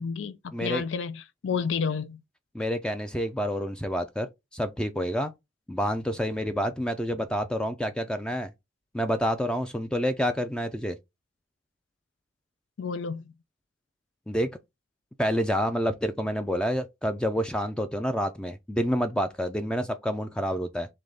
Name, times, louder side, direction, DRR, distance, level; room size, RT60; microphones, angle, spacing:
voice 1, 0.0-2.2 12.8-13.3, left 6 dB, 90° left, 0.4 m, -31 dB
voice 2, 0.5-0.8 2.5-4.3 4.5-5.3 5.7-8.5 8.9-11.0 14.3-14.5 15.2-20.9, equal, 5° left, 0.3 m, -28 dB
3.4 x 3.1 x 3.9 m
head